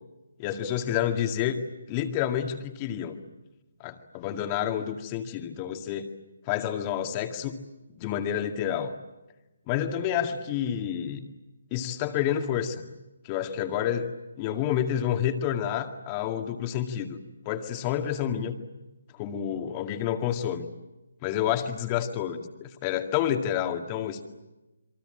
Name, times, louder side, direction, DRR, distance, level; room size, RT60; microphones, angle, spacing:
voice 1, 0.4-1.6 1.9-3.2 3.8-6.1 6.5-7.6 7.9-8.9 9.7-11.3 11.7-12.8 13.2-17.2 17.5-18.5 19.2-20.7 21.2-24.2, left 10 dB, 25° left, 6 dB, 2.1 m, -29 dB
28.0 x 23.0 x 8.8 m, 1.1 s
figure-of-eight pair, 150°, 0 cm